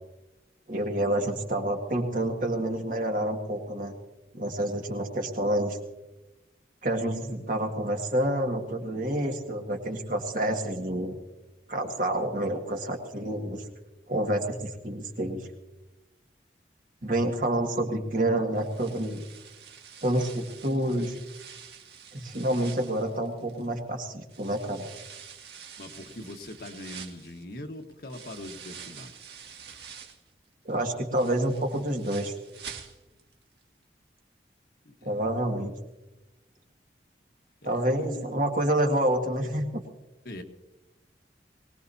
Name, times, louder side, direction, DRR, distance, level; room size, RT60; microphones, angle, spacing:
voice 1, 0.7-3.9 4.3-5.8 6.8-11.2 11.7-13.6 14.1-15.5 17.0-19.2 20.0-21.2 22.1-24.8 30.7-32.3 35.0-35.7 37.6-39.8, right 1 dB, 50° right, 2 dB, 1.9 m, -28 dB
sound 1, 18.5-23.8 24.3-30.3 30.7-33.3 33.6-33.7 34.2-34.3, right 7 dB, 70° right, 1.8 m, -47 dB
voice 2, 25.8-29.1 34.8-35.2 37.6-38.3 40.2-40.4, left 1 dB, 55° left, 4 dB, 1.4 m, -42 dB
23.0 x 19.0 x 2.8 m, 1.0 s
head